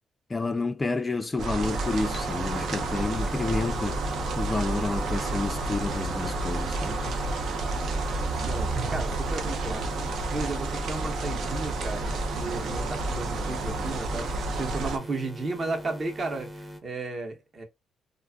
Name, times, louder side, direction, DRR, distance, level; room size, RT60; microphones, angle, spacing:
voice 1, 0.3-4.0 4.4-7.0, left 3 dB, 20° left, 0.3 m, -30 dB
sound 1, 1.4-15.0, right 2 dB, 70° right, 0.5 m, -30 dB
sound 2, 1.6-16.8, equal, 10° right, 0.7 m, -42 dB
voice 2, 8.4-12.1 12.4-14.3 14.6-17.6, right 3 dB, 40° right, 0.9 m, -34 dB
2.5 x 2.3 x 2.3 m
cardioid pair, 90°, 0 cm